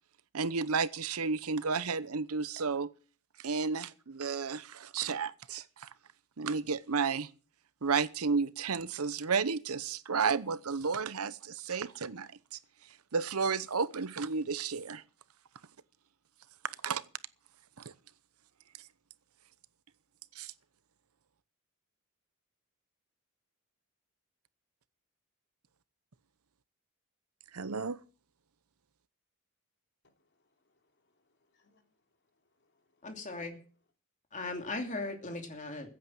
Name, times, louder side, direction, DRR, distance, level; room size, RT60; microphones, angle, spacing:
voice 1, 0.3-2.9 3.4-5.9 6.4-7.3 7.8-12.6 13.1-15.0 16.8-17.0 17.8-17.9 20.4-20.5 27.5-28.0, right 5 dB, 75° right, 0.8 m, -32 dB
voice 2, 30.0-33.1, left 3 dB, 50° left, 3.1 m, -76 dB
voice 3, 33.0-33.6 34.3-35.9, left 2 dB, 35° left, 2.8 m, -38 dB
15.5 x 8.8 x 7.7 m
head